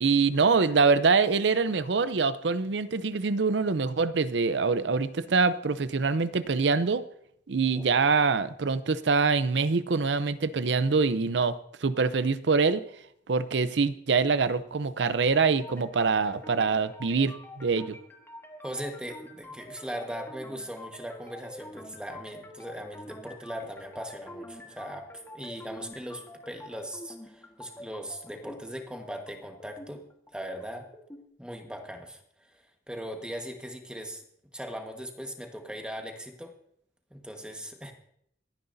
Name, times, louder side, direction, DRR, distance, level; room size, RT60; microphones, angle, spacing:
voice 1, 0.0-7.0 7.5-12.8 13.3-18.0, right 4 dB, 75° right, 14 dB, 0.6 m, -25 dB
sound 1, 15.3-31.3, left 1 dB, 15° left, 1.5 m, -47 dB
voice 2, 18.6-30.0 30.3-30.9 31.4-32.2 32.9-34.2 34.5-36.5 37.1-37.9, equal, 5° right, 3 dB, 1.4 m, -39 dB
27.0 x 9.6 x 2.7 m, 0.71 s
head